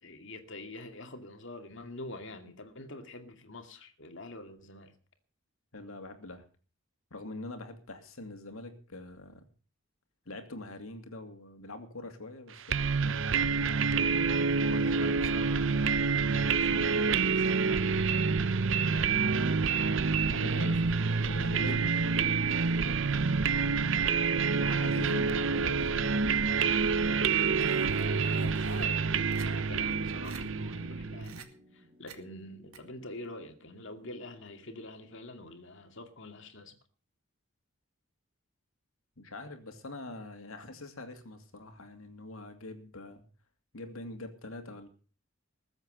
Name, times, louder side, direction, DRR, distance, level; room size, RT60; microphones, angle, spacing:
voice 1, 0.0-4.9 14.6-18.1 18.9-22.5 24.7-24.8 27.9-31.5 31.7-36.8, left 2 dB, 60° left, 2.4 m, -46 dB
voice 2, 5.7-6.4 7.1-9.4 10.3-13.3 20.3-20.8 21.2-21.9 22.9-23.0 24.6-26.3 39.2-43.2 43.7-44.9, left 2 dB, 80° left, 2.6 m, -44 dB
sound 1, 12.7-31.4, right 5 dB, 60° right, 0.7 m, -27 dB
sound 2, 27.6-28.8 29.3-29.5 29.9-30.0 30.2-30.4 31.2-31.5 32.1-32.2 32.7-32.8, right 6 dB, 90° right, 2.1 m, -49 dB
sound 3, 34.6-36.7, equal, 40° right, 7.3 m, -56 dB
20.5 x 8.0 x 6.5 m
head